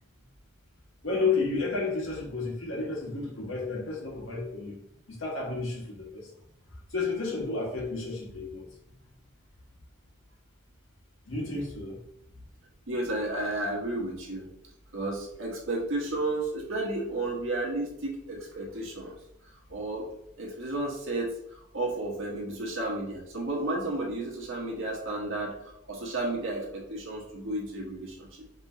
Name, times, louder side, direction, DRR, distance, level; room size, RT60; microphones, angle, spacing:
voice 1, 1.0-4.8 5.1-6.3 6.9-8.7 11.2-12.0, left 4 dB, 85° left, -2 dB, 1.5 m, -31 dB
voice 2, 12.9-14.4 14.9-19.1 19.7-20.1 20.4-21.3 21.7-25.6 25.9-28.3, right 2 dB, 85° right, -3 dB, 1.4 m, -32 dB
5.3 x 3.1 x 2.8 m, 0.77 s
head